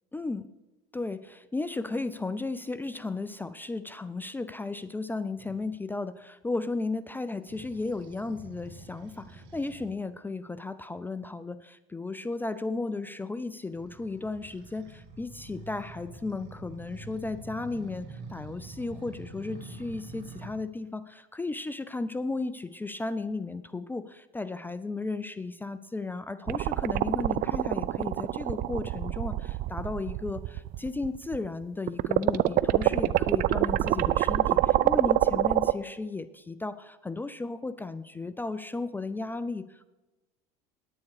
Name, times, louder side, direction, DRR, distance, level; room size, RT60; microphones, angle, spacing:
voice 1, 0.1-0.5 0.9-39.9, left 3 dB, 10° left, 14 dB, 0.4 m, -35 dB
sound 1, 5.4-5.7 7.5-9.9 13.7-20.5, right 2 dB, 65° right, 2.0 m, -46 dB
sound 2, 26.5-31.5 31.9-35.7, right 14 dB, 50° right, 0.5 m, -26 dB
9.8 x 9.5 x 4.8 m, 1.1 s
supercardioid pair, 100°, 19 cm